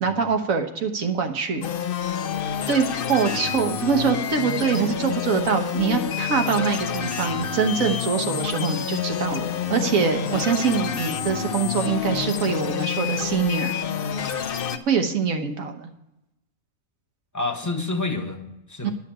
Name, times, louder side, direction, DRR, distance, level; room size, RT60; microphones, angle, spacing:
voice 1, 0.0-1.6 2.7-13.7 14.9-15.9 18.8-18.9, right 5 dB, 80° right, 6 dB, 1.5 m, -24 dB
sound 1, 1.6-14.8, left 8 dB, 55° left, 0.7 m, -28 dB
voice 2, 17.3-18.9, left 3 dB, 15° left, 4 dB, 1.0 m, -29 dB
11.5 x 5.8 x 8.7 m, 0.91 s
omnidirectional pair, 1.4 m